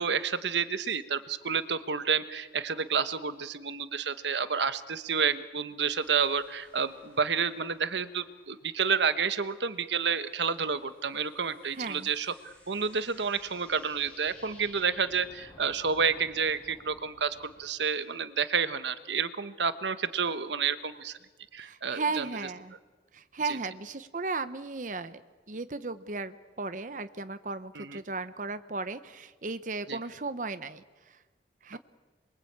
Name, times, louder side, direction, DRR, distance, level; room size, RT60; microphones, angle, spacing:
voice 1, 0.0-21.2 21.5-22.3 27.7-28.0 29.9-30.0, right 6 dB, 80° right, 13 dB, 1.2 m, -30 dB
sound 1, 5.9-8.9 9.2-17.7, left 1 dB, 10° left, 7.7 m, -56 dB
voice 2, 11.7-12.1 21.6-22.8 23.1-25.2 25.5-31.2 31.6-31.8, right 3 dB, 45° right, 11 dB, 0.9 m, -35 dB
27.5 x 23.0 x 8.7 m, 1.3 s
head